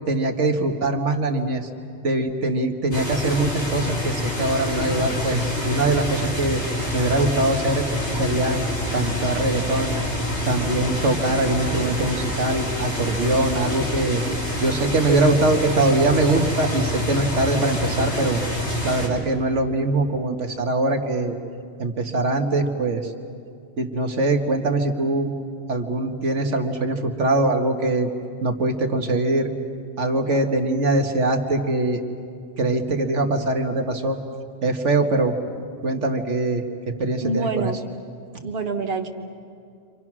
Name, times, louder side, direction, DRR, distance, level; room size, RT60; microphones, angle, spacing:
voice 1, 0.1-1.7 2.0-6.6 6.9-7.8 8.2-10.0 10.5-14.2 14.6-18.4 18.8-21.4 21.8-23.1 23.8-25.3 25.7-28.1 28.4-29.5 30.0-32.0 32.6-34.2 34.6-35.4 35.8-36.6 37.0-37.7, right 2 dB, 75° right, 4 dB, 1.8 m, -22 dB
sound 1, 2.9-19.1, left 1 dB, 65° left, 4.8 m, -27 dB
voice 2, 37.2-37.8 38.4-39.1, right 3 dB, 55° right, 1 dB, 1.6 m, -26 dB
30.0 x 25.5 x 6.1 m, 2.4 s
omnidirectional pair, 1.2 m